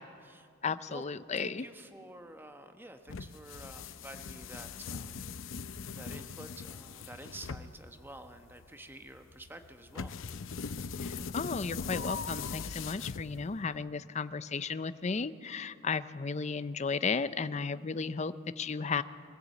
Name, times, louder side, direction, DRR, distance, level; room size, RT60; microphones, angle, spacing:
voice 1, 0.6-1.7 11.0-19.0, left 5 dB, 35° left, 14 dB, 0.5 m, -34 dB
voice 2, 1.4-5.2 5.9-10.1, right 1 dB, 10° right, 7 dB, 1.0 m, -49 dB
sound 1, 3.1-13.7, left 5 dB, 80° left, 0.6 m, -40 dB
23.0 x 14.5 x 8.3 m, 2.3 s
head